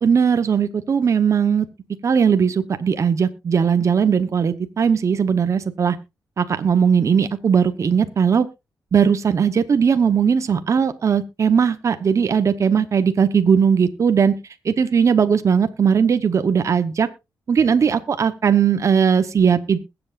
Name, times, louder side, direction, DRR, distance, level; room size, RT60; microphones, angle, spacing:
voice 1, 0.0-1.7 2.0-6.0 6.4-8.5 8.9-14.4 14.6-17.1 17.5-19.8, right 6 dB, 45° right, 10 dB, 1.0 m, -18 dB
21.0 x 8.0 x 2.5 m, 0.25 s
wide cardioid pair, 140°, 7 cm